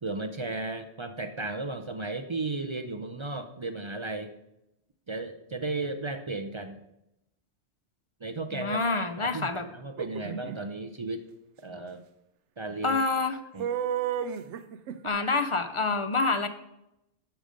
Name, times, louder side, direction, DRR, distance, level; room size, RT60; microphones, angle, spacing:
voice 1, 0.0-4.3 5.1-6.8 8.2-8.8 9.2-11.2 11.6-12.0 12.6-13.0 13.3-13.7, right 2 dB, 40° right, 7 dB, 0.4 m, -35 dB
voice 2, 8.5-9.7 12.8-13.4 15.0-16.5, left 3 dB, 45° left, 9 dB, 0.4 m, -27 dB
sound 1, 10.0-10.6 13.6-15.1, right 9 dB, 75° right, 0.9 m, -32 dB
12.0 x 5.3 x 5.1 m, 0.87 s
omnidirectional pair, 1.2 m